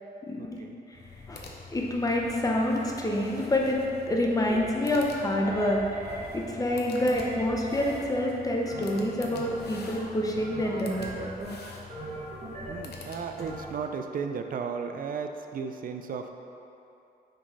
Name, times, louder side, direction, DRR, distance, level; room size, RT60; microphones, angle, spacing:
voice 1, 0.2-0.6 0.9-1.0 1.3-1.4 1.7-3.8 4.1-11.3, left 1 dB, 20° left, -1 dB, 0.7 m, -27 dB
sound 1, 0.9-13.9, left 4 dB, 75° left, 0.7 m, -46 dB
sound 2, 4.5-4.6 5.4-6.3 7.1-7.9 8.7-9.6 10.3-11.5 11.9-12.8 13.4-13.6, right 1 dB, 40° right, 1.2 m, -39 dB
voice 2, 12.7-16.3, right 6 dB, 55° right, 6 dB, 0.4 m, -34 dB
6.4 x 3.9 x 4.8 m, 2.8 s
wide cardioid pair, 140°, 17 cm